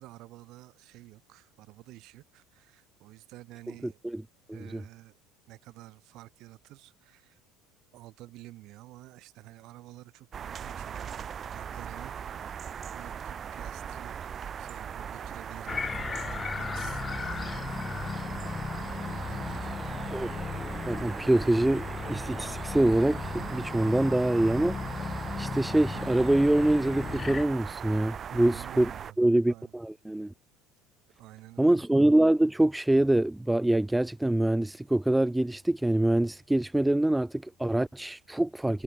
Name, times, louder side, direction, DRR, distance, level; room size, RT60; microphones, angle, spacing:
voice 1, 0.0-4.0 4.5-5.2 5.5-7.4 7.9-14.3 14.6-17.8 18.9-20.2 28.3-29.2 29.5-29.7 31.1-31.8, right 17 dB, 50° right, 3.0 m, -50 dB
sound 1, 10.3-29.1, right 8 dB, 25° right, 1.5 m, -39 dB
sound 2, 15.7-27.4, left 5 dB, 20° left, 1.1 m, -36 dB
voice 2, 20.9-28.9 29.2-30.3 31.6-38.8, right 1 dB, 5° right, 0.3 m, -25 dB
cardioid pair, 150°, 0 cm